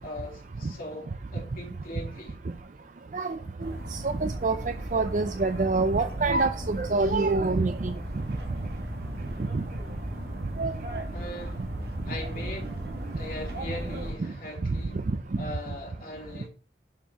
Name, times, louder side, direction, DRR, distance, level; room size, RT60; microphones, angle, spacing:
voice 1, 0.0-2.4 11.1-11.7 12.0-12.8 13.1-15.0 15.4-16.5, left 1 dB, 50° left, 2.8 m, -40 dB
voice 2, 3.1-7.9 9.5-9.6 10.6-11.0 14.2-14.3 14.6-14.8 15.1-15.2, right 3 dB, 45° right, 0.4 m, -27 dB
sound 1, 3.6-14.1, right 1 dB, 60° right, 1.5 m, -36 dB
7.1 x 4.4 x 6.0 m
head